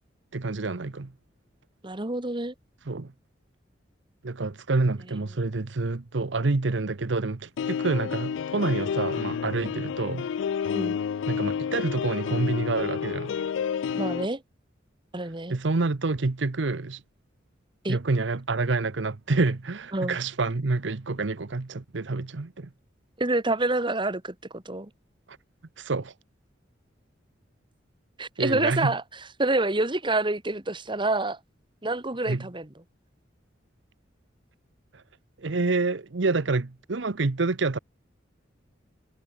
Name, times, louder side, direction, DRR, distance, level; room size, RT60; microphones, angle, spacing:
voice 1, 0.3-1.1 2.9-3.1 4.2-10.3 11.3-13.3 15.5-17.0 17.9-22.7 25.8-26.1 28.4-28.9 32.3-32.5 35.4-37.8, right 3 dB, 70° right, 0.9 m, -27 dB
voice 2, 1.8-2.5 10.7-11.0 13.9-14.4 15.1-15.6 17.8-18.0 19.9-20.2 23.2-24.9 28.2-29.0 29.4-31.4 31.8-32.7, right 2 dB, 25° right, 1.9 m, -27 dB
sound 1, 7.6-14.3, left 7 dB, 80° left, 0.3 m, -30 dB
head